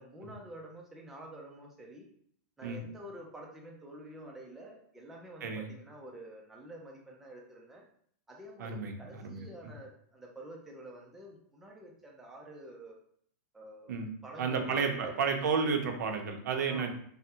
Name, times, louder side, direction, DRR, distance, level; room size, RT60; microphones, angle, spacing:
voice 1, 0.0-2.1 2.6-7.9 8.3-13.0 13.5-13.9 14.2-15.1 16.7-16.9, right 1 dB, 5° right, -2 dB, 0.3 m, -48 dB
voice 2, 8.6-9.5 13.9-14.1 14.4-16.9, right 5 dB, 90° right, 4 dB, 0.6 m, -32 dB
3.4 x 2.0 x 2.7 m, 0.64 s
supercardioid pair, 165°, 9 cm